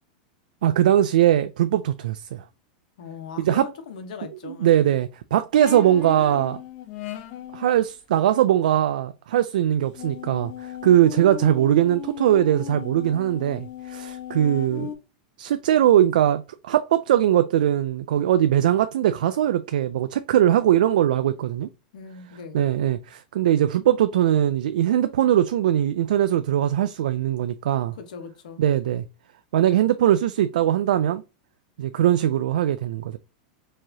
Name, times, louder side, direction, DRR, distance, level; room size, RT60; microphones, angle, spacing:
voice 1, 0.6-2.4 3.4-3.7 4.4-6.6 7.5-14.9 15.4-21.7 22.5-27.9 28.6-29.0 29.5-31.2 31.8-33.2, right 11 dB, 85° right, 0.3 m, -21 dB
voice 2, 3.0-5.0 21.9-22.6 27.9-28.6, left 6 dB, 70° left, 1.2 m, -39 dB
sound 1, 5.6-7.8 9.9-15.0, left 10 dB, 35° left, 0.5 m, -36 dB
4.6 x 2.9 x 2.7 m
supercardioid pair, 170°, 4 cm